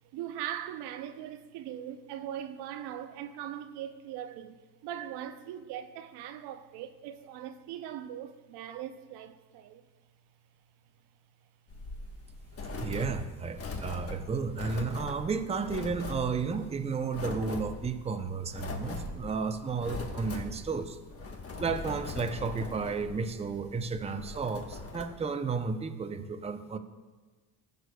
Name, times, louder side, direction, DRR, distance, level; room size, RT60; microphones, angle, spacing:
voice 1, 0.1-9.8, right 10 dB, 75° right, 0.6 m, -40 dB
sound 1, 11.7-25.0, left 3 dB, 35° left, 1.2 m, -41 dB
voice 2, 12.8-21.0 21.6-26.8, right 5 dB, 15° right, 0.6 m, -33 dB
15.0 x 6.5 x 2.3 m
supercardioid pair, 90°, 41 cm